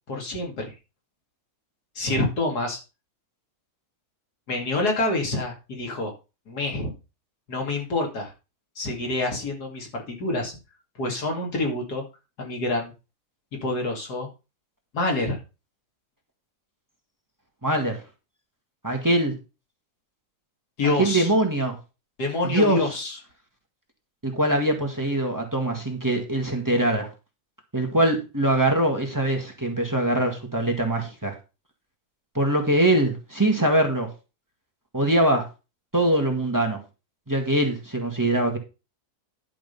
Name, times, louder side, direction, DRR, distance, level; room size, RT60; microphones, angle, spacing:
voice 1, 0.1-0.7 2.0-2.8 4.5-6.1 6.5-6.9 7.5-8.3 8.8-10.6 11.0-12.0 12.4-12.9 13.6-14.3 14.9-15.4 20.8-21.3 22.2-23.2, left 2 dB, 85° left, 2 dB, 2.9 m, -27 dB
voice 2, 17.6-18.0 18.8-19.4 20.8-21.8 22.4-22.8 24.2-27.1 27.7-31.3 32.4-34.1 34.9-35.5 35.9-36.8 37.3-38.6, right 1 dB, 10° right, 3 dB, 1.7 m, -23 dB
11.0 x 5.1 x 5.4 m, 0.30 s
omnidirectional pair, 1.6 m